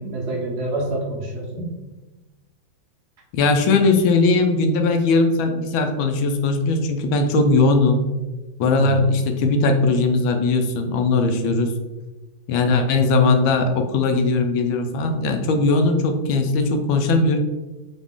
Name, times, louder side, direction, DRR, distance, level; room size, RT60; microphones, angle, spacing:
voice 1, 0.0-1.7 8.6-9.0 12.6-12.9, right 2 dB, 65° right, -2 dB, 1.1 m, -27 dB
voice 2, 3.3-8.0 8.6-11.7 12.5-17.4, left 3 dB, 80° left, 5 dB, 1.3 m, -19 dB
4.0 x 3.0 x 3.5 m, 1.1 s
omnidirectional pair, 2.2 m